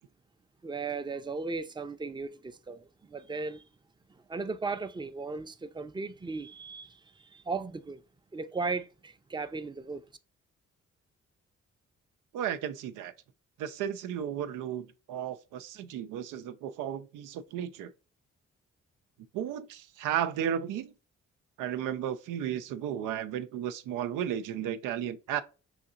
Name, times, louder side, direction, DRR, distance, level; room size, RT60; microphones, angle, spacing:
voice 1, 0.6-2.9 3.1-3.6 4.3-7.0 7.3-8.0 8.3-10.0, right 4 dB, 15° right, 0.5 m, -36 dB
voice 2, 12.3-13.1 13.6-17.9 19.3-20.9 21.6-25.4, right 9 dB, 85° right, 0.5 m, -34 dB
5.6 x 2.8 x 2.5 m
supercardioid pair, 50°, 30 cm